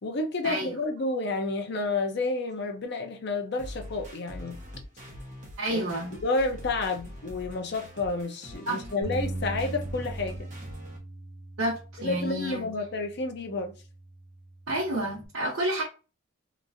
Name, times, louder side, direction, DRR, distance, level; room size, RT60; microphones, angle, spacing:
voice 1, 0.0-4.6 5.7-5.8 6.2-10.5 12.0-13.7, left 3 dB, 55° left, 0.6 m, -30 dB
sound 1, 3.6-11.0, equal, 40° right, 1.0 m, -44 dB
voice 2, 5.6-6.2 8.7-8.8 11.6-12.7 14.7-15.8, right 1 dB, 85° right, 0.9 m, -29 dB
Bass guitar, 9.0-15.3, right 1 dB, 60° right, 0.7 m, -40 dB
2.9 x 2.5 x 2.5 m
head